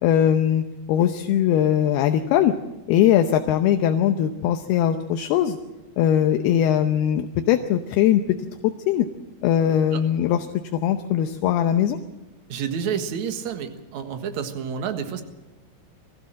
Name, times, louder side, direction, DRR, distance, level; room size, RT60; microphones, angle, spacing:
voice 1, 0.0-2.5 2.9-5.6 6.0-8.4 8.6-9.1 9.4-10.5 10.7-12.0, left 10 dB, 80° left, 7 dB, 2.8 m, -20 dB
voice 2, 12.5-15.2, right 7 dB, 55° right, 6 dB, 2.4 m, -29 dB
22.5 x 15.5 x 7.5 m, 1.0 s
omnidirectional pair, 4.7 m